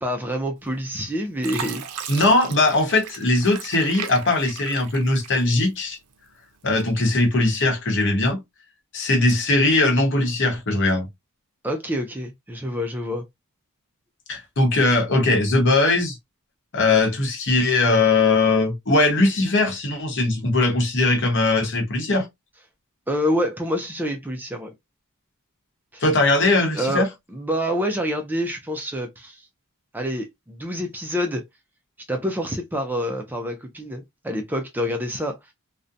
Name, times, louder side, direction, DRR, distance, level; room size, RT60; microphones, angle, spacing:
voice 1, 0.0-1.8 11.6-13.2 23.1-24.7 25.9-26.0 26.7-29.5 29.9-31.4 32.1-35.4, equal, 10° right, 0.3 m, -27 dB
Fill (with liquid), 0.7-1.0 1.4-5.8 6.3-7.1 7.6-7.8, right 7 dB, 80° right, 0.5 m, -37 dB
voice 2, 2.1-6.0 6.6-8.4 8.9-11.1 14.3-16.2 16.7-22.3 26.0-27.1, left 2 dB, 55° left, 0.9 m, -20 dB
2.5 x 2.1 x 2.4 m
head